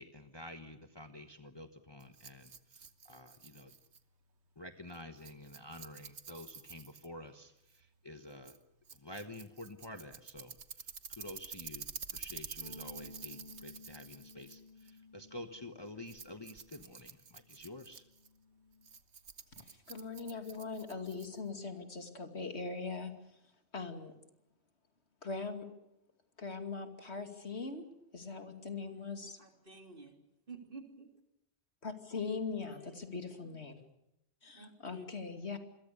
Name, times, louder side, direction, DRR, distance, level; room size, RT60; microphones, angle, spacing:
voice 1, 0.0-3.7 4.6-8.6 8.9-18.0, left 1 dB, 25° left, 7 dB, 1.3 m, -49 dB
Rattle, 2.0-21.6, right 6 dB, 80° right, 1.6 m, -50 dB
Bass guitar, 12.6-18.9, left 2 dB, 45° left, 1.8 m, -56 dB
voice 2, 19.6-23.1 23.7-24.1 25.2-25.7 26.4-27.8 28.1-29.4 31.8-33.7 34.4-35.6, left 4 dB, 70° left, 6 dB, 2.9 m, -41 dB
voice 3, 29.4-30.2 30.5-31.1 32.7-33.0 33.4-33.5 34.6-35.1, right 3 dB, 50° right, 4 dB, 3.3 m, -51 dB
28.0 x 22.5 x 6.9 m, 0.83 s
omnidirectional pair, 1.1 m